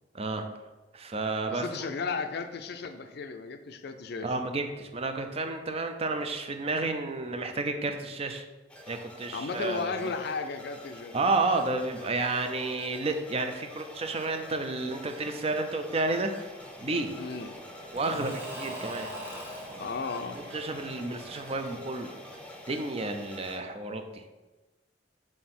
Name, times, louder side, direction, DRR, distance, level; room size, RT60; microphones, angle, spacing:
voice 1, 0.1-0.4 0.9-1.6 4.2-8.4 8.9-10.1 11.1-16.3 16.8-17.1 17.9-19.1 20.3-22.1 22.7-24.2, right 3 dB, 35° right, 6 dB, 0.5 m, -31 dB
voice 2, 1.5-4.3 9.3-11.1 17.2-17.5 19.8-20.4, left 4 dB, 60° left, 8 dB, 0.5 m, -34 dB
sound 1, 8.7-23.6, left 1 dB, 5° left, 0.7 m, -47 dB
Engine / Mechanisms / Drill, 16.4-23.1, equal, 10° right, 1.1 m, -44 dB
6.2 x 3.8 x 4.2 m, 1.2 s
head